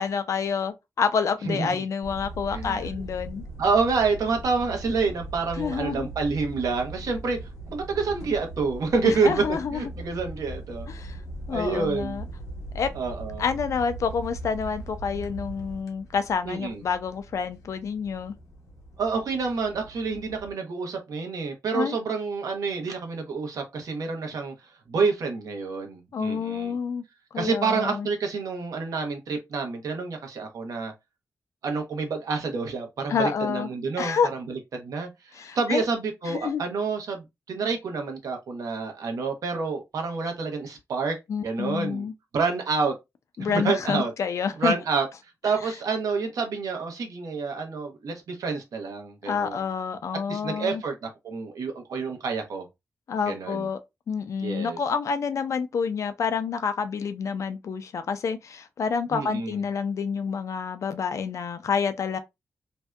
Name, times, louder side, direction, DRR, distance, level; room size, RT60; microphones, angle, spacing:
voice 1, 0.0-3.4 5.6-6.1 9.0-9.8 10.9-11.2 11.5-12.3 12.7-12.9 13.4-18.4 21.7-21.9 26.1-27.0 27.3-28.1 33.1-33.7 34.0-34.3 35.3-35.8 36.3-36.6 41.3-42.1 43.4-44.7 49.3-50.8 53.1-53.8 54.1-62.2, left 6 dB, 60° left, 0.3 m, -28 dB
sound 1, 2.0-20.5, right 2 dB, 80° left, 0.7 m, -40 dB
voice 2, 2.5-3.1 3.6-9.4 9.7-10.9 11.5-12.2 12.9-13.5 16.5-16.8 19.0-24.5 24.9-26.8 27.4-30.9 31.6-42.1 42.3-43.0 43.5-44.1 44.6-45.1 45.4-49.7 50.3-52.7 53.3-53.7 54.4-54.8 59.1-59.6, right 4 dB, 80° right, 0.7 m, -28 dB
2.6 x 2.2 x 2.2 m
wide cardioid pair, 155°, 6 cm